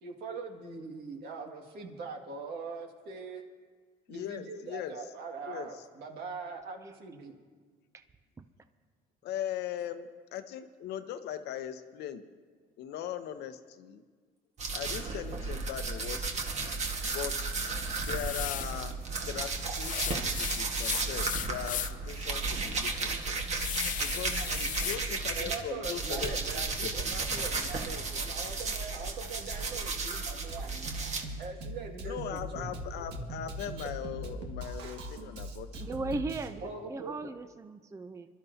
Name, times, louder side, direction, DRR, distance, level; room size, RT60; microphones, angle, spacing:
voice 1, 0.0-3.4 4.1-7.4 24.4-24.7 25.4-30.7 31.4-32.4 33.8-33.9 36.6-37.3, right 4 dB, 70° right, 2 dB, 2.1 m, -42 dB
voice 2, 4.1-4.9 5.5-5.7 9.2-12.2 12.8-14.0 14.7-16.7 17.0-17.5 18.0-23.4 24.0-26.9 32.0-36.0, left 10 dB, 80° left, 9 dB, 0.8 m, -40 dB
sound 1, 14.6-25.5 25.8-31.2, right 3 dB, 40° right, 1.6 m, -34 dB
sound 2, 17.9-18.8 19.8-22.1 22.5-22.6 23.1-25.0, left 11 dB, 50° left, 0.5 m, -36 dB
Drum kit, 30.5-36.5, right 1 dB, 85° right, 1.7 m, -41 dB
voice 3, 35.8-36.6 36.9-38.3, right 3 dB, 20° right, 10 dB, 0.5 m, -37 dB
26.0 x 12.0 x 2.8 m, 1.5 s
cardioid pair, 110°, 17 cm